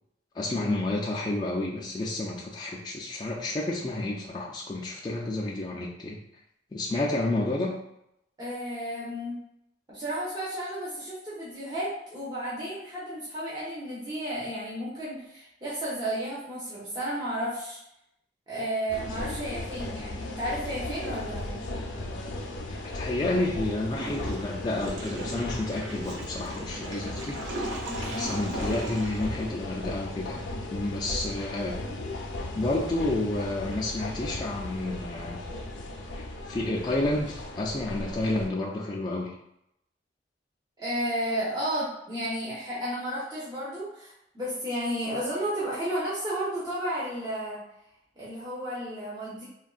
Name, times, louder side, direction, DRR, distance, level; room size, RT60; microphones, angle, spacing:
voice 1, 0.3-6.2 6.7-7.8 22.7-27.7 28.0-30.4 30.7-31.8 32.6-35.4 36.1-39.3, left 2 dB, 25° left, -3 dB, 0.3 m, -30 dB
voice 2, 8.4-9.4 9.9-17.8 18.5-21.7 27.8-28.3 40.8-47.6 48.2-49.4, right 1 dB, 20° right, -8 dB, 0.7 m, -33 dB
sound 1, 18.9-38.5, left 2 dB, 80° left, 0.5 m, -36 dB
Water / Toilet flush, 23.9-30.1, right 1 dB, 90° right, 0.6 m, -38 dB
3.5 x 2.2 x 2.4 m, 0.79 s
head